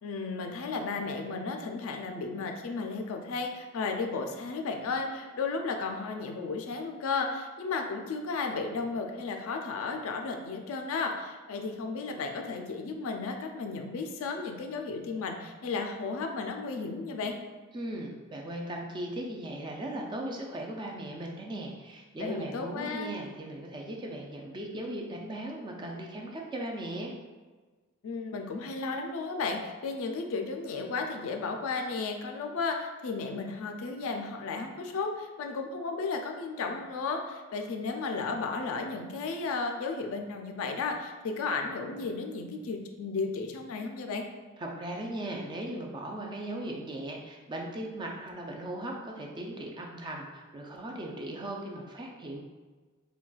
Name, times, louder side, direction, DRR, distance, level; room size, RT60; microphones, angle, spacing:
voice 1, 0.0-17.3 22.2-23.1 28.0-44.3, left 4 dB, 65° left, 4 dB, 0.3 m, -34 dB
voice 2, 17.7-27.1 44.6-52.4, right 1 dB, 20° right, 0 dB, 0.3 m, -38 dB
3.8 x 2.2 x 2.3 m, 1.4 s
head